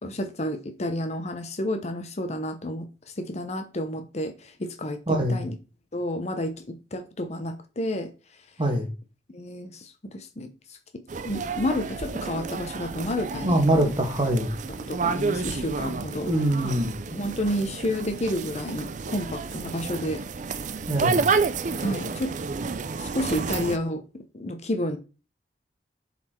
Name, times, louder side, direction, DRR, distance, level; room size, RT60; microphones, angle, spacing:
voice 1, 0.0-2.9 3.2-5.5 5.9-8.1 9.3-10.5 10.9-13.9 14.8-16.3 16.6-16.7 17.1-20.2 21.8-22.3 23.0-24.0 24.3-25.0, left 1 dB, 40° left, 0.8 m, -30 dB
voice 2, 5.1-5.4 8.6-8.9 13.4-14.5 16.2-16.9 20.9-21.2, right 1 dB, 25° right, 1.6 m, -23 dB
sound 1, 11.1-23.8, right 4 dB, 45° right, 0.5 m, -30 dB
7.5 x 4.2 x 4.4 m
head